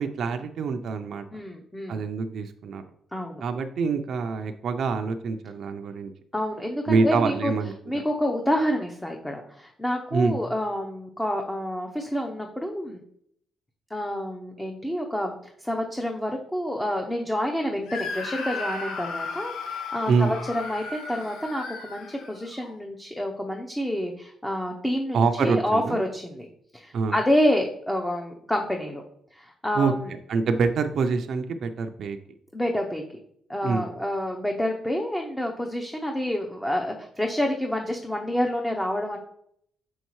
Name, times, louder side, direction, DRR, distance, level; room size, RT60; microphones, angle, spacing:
voice 1, 0.0-1.2 1.9-2.8 3.4-6.1 6.9-7.7 10.1-10.4 20.1-20.3 25.1-26.0 26.9-27.2 29.7-29.9 30.3-32.2 33.6-33.9, right 4 dB, 60° right, 6 dB, 0.5 m, -25 dB
voice 2, 1.3-2.0 3.1-3.4 6.3-7.5 7.9-13.0 13.9-26.5 26.7-29.0 29.3-30.1 32.5-33.0 33.5-39.2, equal, 10° left, 2 dB, 0.7 m, -28 dB
Screaming, 17.9-22.7, left 4 dB, 90° left, 1.0 m, -35 dB
6.2 x 5.4 x 3.1 m, 0.70 s
cardioid pair, 90°, 0 cm